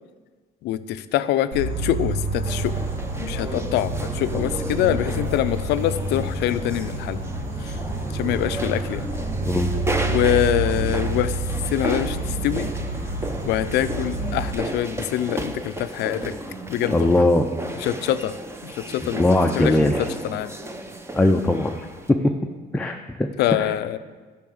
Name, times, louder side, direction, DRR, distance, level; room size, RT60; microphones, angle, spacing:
voice 1, 0.6-2.7 3.2-7.2 7.6-7.8 8.1-9.1 10.1-11.4 11.7-12.7 13.4-16.3 16.7-17.2 17.8-18.3 18.6-19.3 19.5-20.5 23.4-24.0, left 12 dB, 80° left, 12 dB, 0.5 m, -24 dB
Insect, 1.5-14.5, right 2 dB, 75° right, 2.8 m, -28 dB
sound 1, 2.4-22.1, right 1 dB, 15° right, 0.9 m, -33 dB
voice 2, 16.9-17.4 19.0-19.9 21.1-21.7 22.1-22.2 22.7-23.3 23.6-23.7, left 1 dB, 10° left, 3 dB, 0.6 m, -20 dB
11.0 x 5.8 x 7.8 m, 1.4 s
cardioid pair, 110°, 17 cm